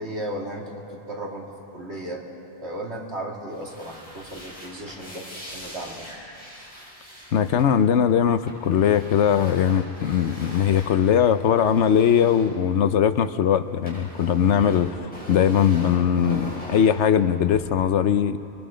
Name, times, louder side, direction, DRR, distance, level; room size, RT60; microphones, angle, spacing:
voice 1, 0.0-2.2 2.6-6.1, right 1 dB, 70° right, -1 dB, 2.8 m, -35 dB
sound 1, 3.5-13.3 13.5-17.6, equal, 5° left, 7.3 m, -41 dB
voice 2, 7.3-18.4, left 8 dB, 80° left, 11 dB, 1.1 m, -20 dB
30.0 x 22.5 x 5.1 m, 2.8 s
omnidirectional pair, 1.2 m